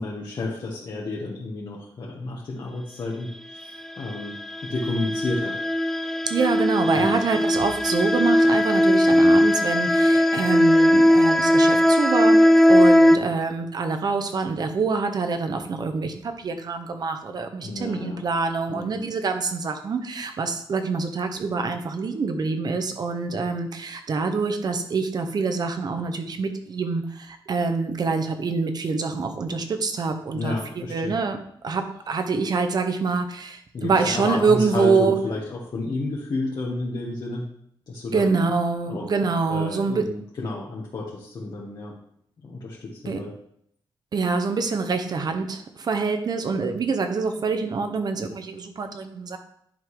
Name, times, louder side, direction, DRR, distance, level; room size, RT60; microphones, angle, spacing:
voice 1, 0.0-5.6 7.0-7.3 17.6-18.2 18.7-19.0 30.3-31.2 33.7-37.5 37.9-38.3 38.9-39.1 39.3-42.0 42.4-43.4, left 2 dB, 55° left, -4 dB, 1.4 m, -31 dB
sound 1, 4.1-13.2, equal, 5° left, 0.3 m, -18 dB
voice 2, 6.3-12.4 12.7-30.6 30.9-31.4 31.6-35.2 38.1-40.1 43.0-43.2 44.1-49.4, right 4 dB, 50° right, 6 dB, 1.0 m, -25 dB
10.5 x 3.9 x 4.8 m, 0.69 s
wide cardioid pair, 130°, 9 cm